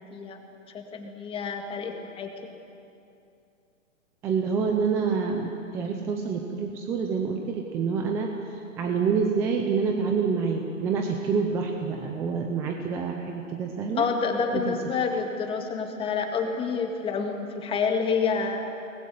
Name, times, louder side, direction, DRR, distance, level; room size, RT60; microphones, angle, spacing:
voice 1, 0.0-2.3 14.0-18.7, left 5 dB, 15° left, 4 dB, 1.9 m, -28 dB
voice 2, 4.2-8.3 8.8-14.1 14.7-14.8, right 5 dB, 5° right, 3 dB, 0.5 m, -27 dB
22.0 x 20.0 x 9.5 m, 2.6 s
hypercardioid pair, 150°, 40 cm